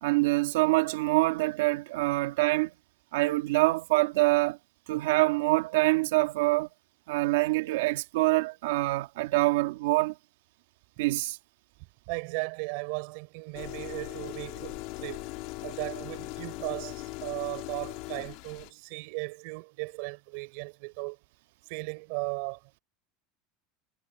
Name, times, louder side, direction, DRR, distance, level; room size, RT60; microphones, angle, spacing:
voice 1, 0.0-2.7 3.1-4.6 4.9-6.7 7.1-10.1 11.0-11.4, right 21 dB, 80° right, 1.9 m, -25 dB
voice 2, 12.1-15.3 15.6-21.2 21.7-22.6, right 33 dB, 60° right, 4.0 m, -36 dB
sound 1, 13.5-18.7, left 22 dB, 55° left, 1.7 m, -39 dB
supercardioid pair, 155°, 0 cm